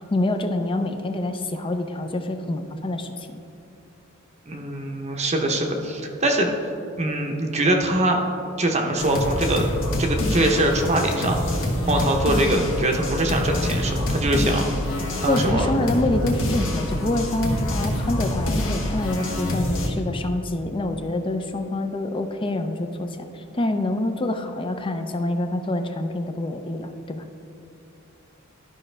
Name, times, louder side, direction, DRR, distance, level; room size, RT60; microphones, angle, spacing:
voice 1, 0.1-3.4 15.3-27.2, left 1 dB, 25° left, 6 dB, 0.5 m, -26 dB
voice 2, 4.5-6.5 7.0-8.2 8.6-9.7 10.0-11.4 11.8-14.7 15.2-15.7, right 1 dB, 30° right, 2 dB, 0.8 m, -23 dB
sound 1, 9.0-19.9, left 1 dB, 65° left, 1.3 m, -26 dB
13.0 x 5.3 x 3.3 m, 2.9 s
head